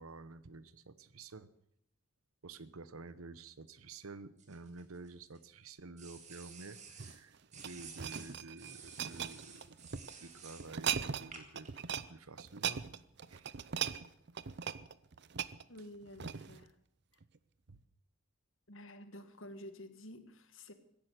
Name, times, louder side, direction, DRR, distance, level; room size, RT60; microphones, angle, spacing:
voice 1, 0.0-1.5 2.4-9.8 10.2-12.8 13.3-13.5 17.7-17.8, right 3 dB, 80° right, 15 dB, 1.0 m, -51 dB
sound 1, 4.4-5.4 6.0-7.2 7.5-10.7 11.3-11.7, right 6 dB, 30° right, 2.2 m, -53 dB
sound 2, 6.9-10.1 10.6-11.3 11.5-12.1 12.4-16.6 17.2-17.4, right 8 dB, 50° right, 0.6 m, -39 dB
voice 2, 15.7-16.7 18.7-20.7, left 1 dB, 65° left, 10 dB, 1.5 m, -50 dB
16.0 x 10.5 x 8.2 m, 0.72 s
head